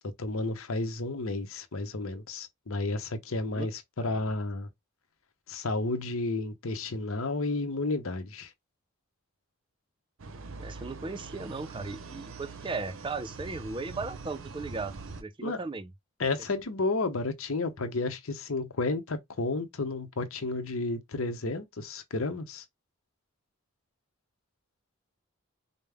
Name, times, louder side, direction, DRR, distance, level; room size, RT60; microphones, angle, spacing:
voice 1, 0.2-4.7 5.5-8.5 15.4-15.6 16.2-22.6, left 2 dB, 70° left, 0.8 m, -32 dB
sound 1, 10.2-15.2, right 4 dB, 65° right, 0.6 m, -43 dB
voice 2, 10.6-15.9, right 3 dB, 20° right, 0.4 m, -37 dB
5.2 x 2.1 x 3.4 m
head